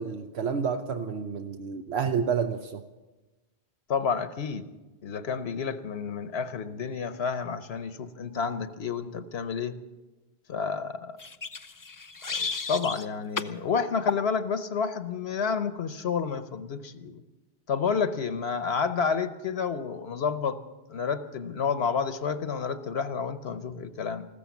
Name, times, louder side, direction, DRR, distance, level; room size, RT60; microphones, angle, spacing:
voice 1, 0.0-2.8, right 6 dB, 80° right, 7 dB, 1.0 m, -29 dB
voice 2, 3.9-4.6 5.0-9.7 10.5-11.2 12.3-17.2 17.7-20.6 20.9-24.3, left 6 dB, 80° left, 11 dB, 1.1 m, -30 dB
sound 1, 11.2-13.1 13.4-13.6 14.1-14.3, left 5 dB, 30° left, 0.4 m, -33 dB
15.0 x 13.5 x 7.1 m, 1.1 s
omnidirectional pair, 1.1 m